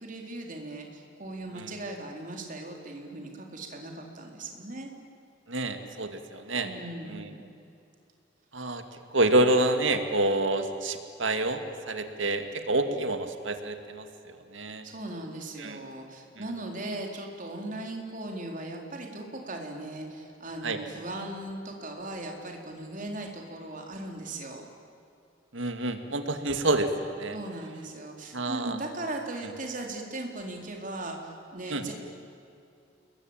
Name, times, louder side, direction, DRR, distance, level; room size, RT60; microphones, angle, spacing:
voice 1, 0.0-4.9 6.6-7.5 14.8-24.6 27.3-31.9, right 2 dB, 45° right, 2 dB, 4.0 m, -38 dB
voice 2, 5.5-6.7 7.1-7.3 8.5-8.8 9.1-14.9 15.6-15.8 16.4-16.5 20.6-20.8 25.5-27.4 28.3-28.8 31.7-31.8, right 2 dB, 85° right, 7 dB, 2.2 m, -28 dB
29.5 x 22.0 x 8.9 m, 2.6 s
head